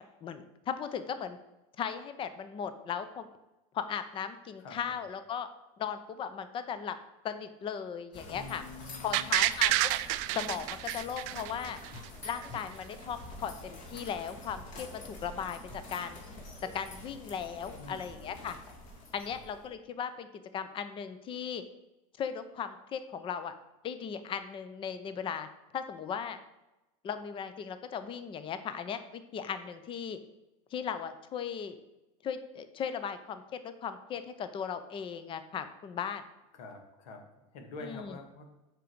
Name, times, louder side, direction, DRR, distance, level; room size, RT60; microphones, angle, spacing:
voice 1, 0.2-1.4 1.8-3.3 3.7-5.5 5.8-7.0 7.2-8.6 9.0-9.9 10.3-11.8 12.2-16.2 16.6-18.6 19.1-20.3 20.5-21.6 22.2-23.5 23.8-25.5 25.7-26.4 27.0-30.2 30.7-31.8 32.2-36.2 37.8-38.2, left 7 dB, 30° left, 11 dB, 0.7 m, -37 dB
voice 2, 4.6-5.0 8.3-9.4 17.8-18.4 19.3-19.4 36.5-38.5, left 3 dB, 70° left, 4 dB, 1.9 m, -47 dB
sound 1, 8.1-19.7, left 2 dB, 45° left, 2.5 m, -47 dB
sound 2, 9.1-12.1 12.4-12.5, right 16 dB, 60° right, 0.5 m, -29 dB
7.4 x 5.2 x 6.8 m, 1.0 s
supercardioid pair, 135°, 18 cm